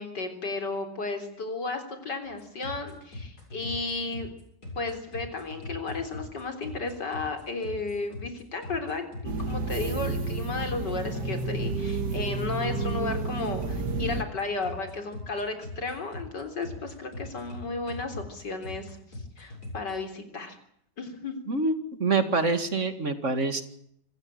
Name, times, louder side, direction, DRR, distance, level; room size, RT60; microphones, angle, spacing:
voice 1, 0.0-4.3 4.8-19.0 19.4-20.6 21.0-21.4, left 3 dB, 85° left, 6 dB, 4.3 m, -34 dB
sound 1, 2.2-20.0, left 2 dB, 65° left, 8.2 m, -41 dB
sound 2, 9.2-14.2, right 3 dB, 75° right, 2.5 m, -31 dB
voice 2, 21.5-23.6, right 3 dB, 45° right, 9 dB, 2.5 m, -26 dB
27.0 x 15.0 x 8.9 m, 0.71 s
omnidirectional pair, 1.8 m